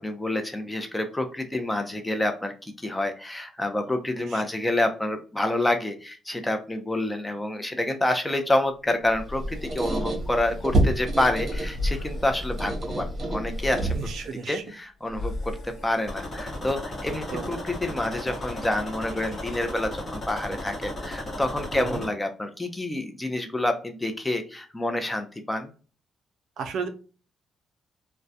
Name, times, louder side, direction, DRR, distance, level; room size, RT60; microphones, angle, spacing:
voice 1, 0.0-13.9 14.5-25.7, left 1 dB, 15° left, 6 dB, 0.5 m, -28 dB
sound 1, 8.8-19.8, left 2 dB, 60° left, 0.7 m, -39 dB
Squeak, 9.1-14.3, right 1 dB, 40° right, 0.9 m, -28 dB
voice 2, 14.0-14.6 17.1-17.5 21.7-22.0 26.6-26.9, right 6 dB, 75° right, 6 dB, 0.4 m, -34 dB
sound 2, 16.1-22.1, left 1 dB, 30° left, 1.0 m, -35 dB
2.2 x 2.1 x 2.6 m, 0.36 s
cardioid pair, 90°, 0 cm